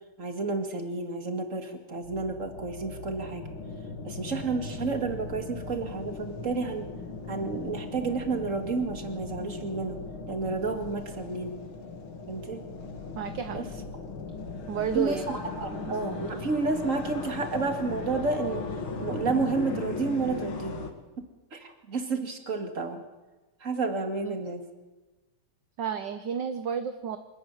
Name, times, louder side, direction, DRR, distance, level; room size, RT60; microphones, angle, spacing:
voice 1, 0.2-3.5 4.0-6.9 7.3-10.0 10.3-11.6 12.3-12.6 13.5-13.6 14.9-18.7 19.0-20.9 21.5-23.0 23.6-24.6, right 4 dB, 35° right, 5 dB, 2.5 m, -31 dB
sound 1, 1.9-20.9, left 4 dB, 70° left, 2.9 m, -38 dB
voice 2, 13.2-13.6 14.7-15.3 15.7-15.9 24.2-24.3 25.8-27.2, right 7 dB, 60° right, 8 dB, 1.7 m, -31 dB
26.0 x 13.5 x 9.7 m, 1.2 s
omnidirectional pair, 2.3 m